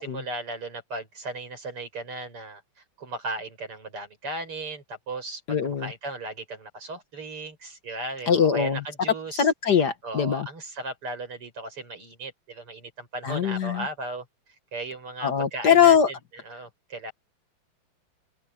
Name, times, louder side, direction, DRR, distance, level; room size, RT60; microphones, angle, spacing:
voice 1, 0.0-2.6 3.0-9.5 10.0-14.3 14.7-16.0 16.3-17.1, right 2 dB, 80° right, 7.5 m, -36 dB
voice 2, 5.5-5.9 8.3-8.8 9.4-10.5 13.2-13.9 15.2-16.1, left 8 dB, 55° left, 1.7 m, -21 dB
open air
omnidirectional pair, 2.4 m